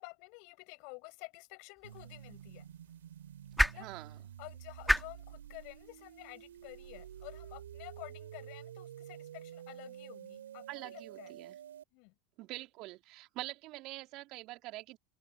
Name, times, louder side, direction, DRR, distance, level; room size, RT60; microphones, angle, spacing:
voice 1, 0.0-2.7 3.6-3.9 4.4-11.3 11.9-12.1, left 35 dB, 60° left, 5.4 m, -51 dB
sound 1, 1.8-8.0, equal, ahead, 2.5 m, -37 dB
sound 2, 1.8-11.8, right 10 dB, 80° right, 3.1 m, -50 dB
voice 2, 3.8-4.2 10.7-11.6 12.4-15.0, right 19 dB, 55° right, 3.7 m, -45 dB
hypercardioid pair, 80°, 0 cm